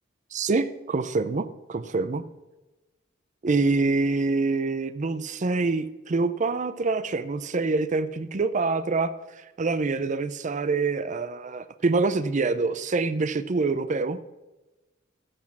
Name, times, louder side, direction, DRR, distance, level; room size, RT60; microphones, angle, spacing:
voice 1, 0.3-2.2 3.4-9.1 9.6-14.2, right 3 dB, 40° right, 13 dB, 0.5 m, -25 dB
14.5 x 6.2 x 6.0 m, 1.1 s
head